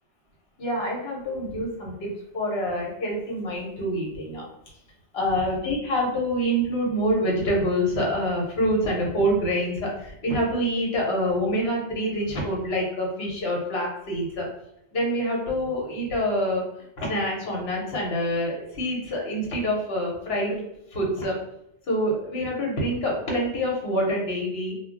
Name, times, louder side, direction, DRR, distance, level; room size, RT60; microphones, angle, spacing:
voice 1, 0.6-4.5 5.1-14.5 14.9-20.6 20.9-21.3 21.9-24.7, equal, 60° left, -2 dB, 1.0 m, -26 dB
2.1 x 2.1 x 3.7 m, 0.80 s
omnidirectional pair, 1.2 m